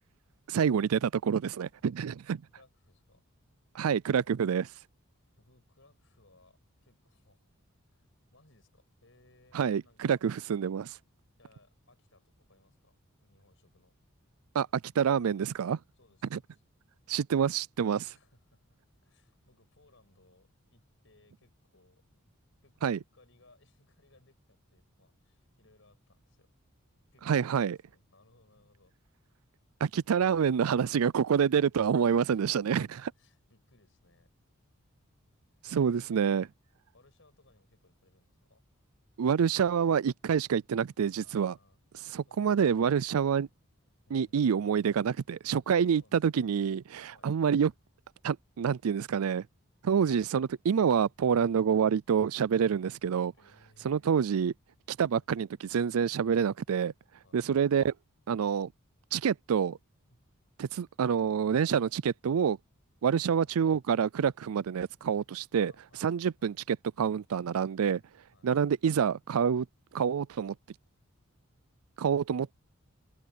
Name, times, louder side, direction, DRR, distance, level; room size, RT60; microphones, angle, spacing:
voice 1, 0.5-2.4 3.7-4.7 9.5-11.0 14.5-15.8 16.3-16.4 17.1-18.1 22.8-23.0 27.3-27.8 29.8-33.1 35.7-36.5 39.2-41.5 42.1-43.5 44.1-47.7 48.2-49.4 49.8-53.3 53.8-54.5 54.9-56.9 57.3-57.9 58.3-58.7 59.1-59.8 60.6-62.6 63.0-65.7 66.0-68.0 68.4-69.7 69.9-70.5 72.0-72.5, right 7 dB, 85° right, 0.4 m, -27 dB
voice 2, 2.5-3.2 5.4-7.6 7.9-10.2 11.4-14.0 15.9-16.6 18.0-22.0 22.6-26.5 27.1-28.9 31.9-32.8 33.2-34.3 35.5-36.5 36.9-38.6 41.2-41.8 42.3-43.0 44.1-44.7 45.7-46.4 47.1-47.3 53.3-54.0 55.1-55.2 57.2-57.4 60.1-60.2 63.2-63.6 65.6-66.5 68.3-68.5, left 2 dB, 60° left, 6.5 m, -65 dB
open air
head